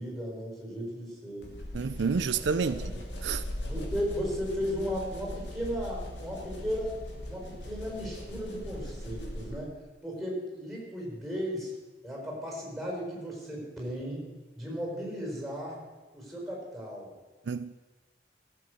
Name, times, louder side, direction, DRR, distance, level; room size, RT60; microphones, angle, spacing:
voice 1, 0.0-1.5 2.6-3.0 3.7-7.0 7.2-9.7 10.0-11.7 12.0-14.3 14.5-15.8 16.1-17.1, equal, ahead, 4.7 m, -35 dB
sound 1, 1.4-9.7, left 1 dB, 80° left, 2.3 m, -39 dB
voice 2, 1.7-2.9 3.2-3.4 17.5-17.7, right 5 dB, 80° right, 0.4 m, -29 dB
15.0 x 7.8 x 6.5 m
head